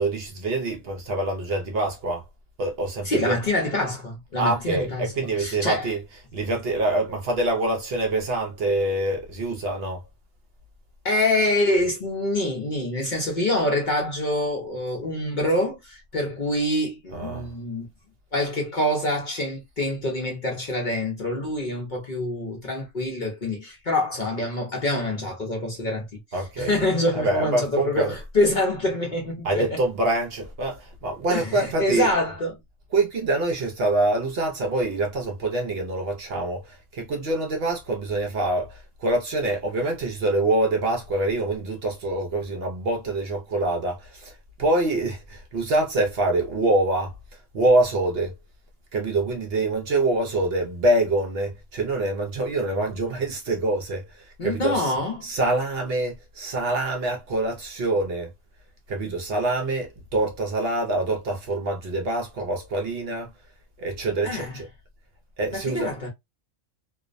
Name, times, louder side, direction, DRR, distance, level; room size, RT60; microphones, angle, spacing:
voice 1, 0.0-2.2 2.6-3.4 4.4-6.0 6.3-10.0 17.1-17.5 26.3-26.8 27.1-28.1 29.4-32.1 32.9-48.3 48.9-54.9 55.2-58.3 58.9-63.3 63.8-64.7 65.4-65.9, right 2 dB, 60° right, 0.7 m, -25 dB
voice 2, 3.0-5.9 11.0-17.9 18.3-26.1 26.6-29.7 31.3-32.6 54.4-55.3 64.2-64.5 65.5-66.1, left 1 dB, 50° left, 0.7 m, -26 dB
2.4 x 2.0 x 2.4 m
omnidirectional pair, 1.3 m